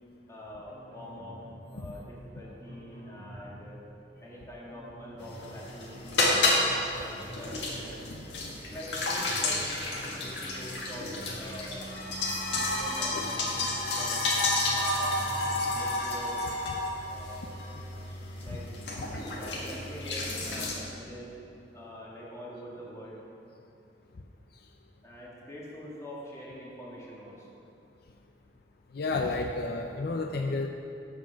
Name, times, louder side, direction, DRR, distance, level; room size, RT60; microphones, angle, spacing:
voice 1, 0.3-1.4 1.7-3.8 4.2-6.3 6.9-8.1 8.7-9.7 10.0-11.9 12.5-14.4 14.7-15.3 15.6-16.4 17.0-17.6 18.4-18.7 19.4-21.3 21.7-23.2 25.0-27.6, equal, 20° left, -5 dB, 2.0 m, -45 dB
sound 1, 0.7-1.6 1.9-2.1 2.4-3.7 4.7-5.6 5.9-6.1 6.4-7.7 8.7-9.6 9.9-10.1 10.4-11.7 12.7-13.6 13.9-14.1 14.4-15.7, equal, 60° right, 2.7 m, -48 dB
sound 2, 5.2-20.7, left 2 dB, 90° left, 1.6 m, -31 dB
voice 2, 28.9-30.7, left 3 dB, 60° left, 3 dB, 0.5 m, -31 dB
13.0 x 5.2 x 5.7 m, 2.6 s
head